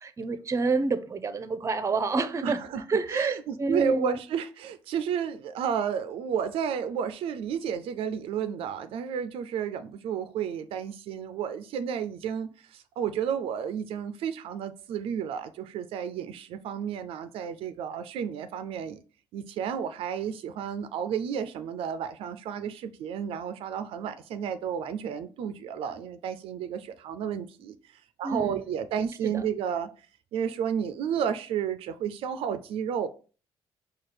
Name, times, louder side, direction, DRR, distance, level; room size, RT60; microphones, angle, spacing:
voice 1, 0.0-2.6 2.9-4.2 28.2-28.7 29.2-29.4, right 3 dB, 30° right, 0.6 m, -28 dB
voice 2, 2.4-2.8 3.1-19.0 19.3-29.9 30.3-33.1, right 8 dB, 80° right, 0.4 m, -32 dB
4.7 x 2.3 x 4.2 m
cardioid pair, 80°, 9 cm